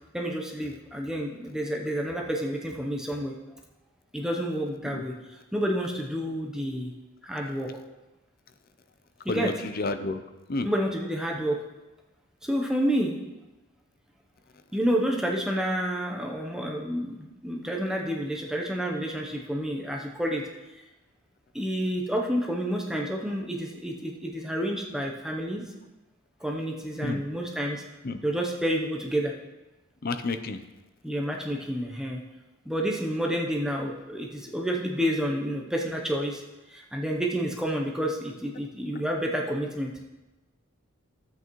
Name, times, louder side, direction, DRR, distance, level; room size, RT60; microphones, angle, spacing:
voice 1, 0.1-3.3 4.1-5.1 5.5-6.9 7.2-7.7 9.2-9.5 10.6-11.6 12.4-13.2 14.7-20.4 21.5-25.6 26.4-27.8 28.2-29.3 31.0-32.2 32.7-36.4 36.7-39.9, equal, 5° right, 0 dB, 0.7 m, -29 dB
voice 2, 9.3-10.2 10.5-10.7 27.0-27.2 28.0-28.2 30.0-30.6, left 3 dB, 45° left, 9 dB, 0.5 m, -30 dB
12.5 x 8.2 x 3.1 m, 1.1 s
head